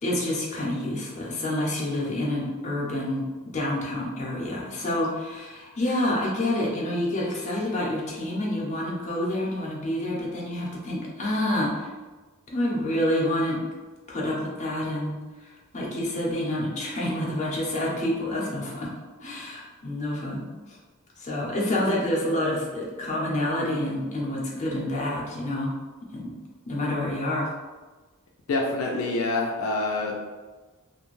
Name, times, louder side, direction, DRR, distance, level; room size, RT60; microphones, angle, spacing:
voice 1, 0.0-11.9 12.5-13.6 14.1-18.9 19.2-20.8 21.2-25.7 26.1-26.3 26.7-27.5, left 1 dB, 35° left, -4 dB, 0.6 m, -28 dB
voice 2, 28.5-30.2, left 2 dB, 75° left, 0 dB, 0.4 m, -26 dB
2.5 x 2.2 x 3.1 m, 1.3 s
head